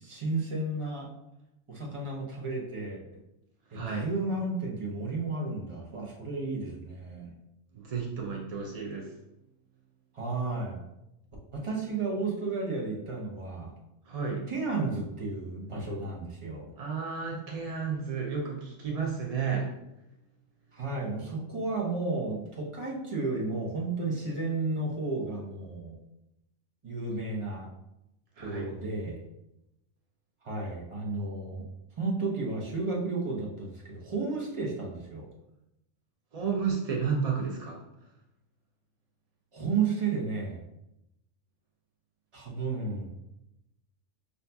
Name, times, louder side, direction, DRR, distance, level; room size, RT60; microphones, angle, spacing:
voice 1, 0.0-1.1 1.7-3.0 3.7-7.3 10.1-10.8 11.5-13.7 14.5-16.7 20.7-26.0 26.8-27.7 28.4-29.2 30.4-31.6 32.0-35.3 39.5-40.6 42.3-43.1, right 3 dB, 30° right, -3 dB, 0.7 m, -32 dB
voice 2, 3.7-4.1 7.7-9.2 14.1-14.4 16.8-19.7 28.4-28.7 36.3-37.8, right 6 dB, 70° right, 0 dB, 0.3 m, -32 dB
5.5 x 2.6 x 2.2 m, 0.88 s
omnidirectional pair, 1.3 m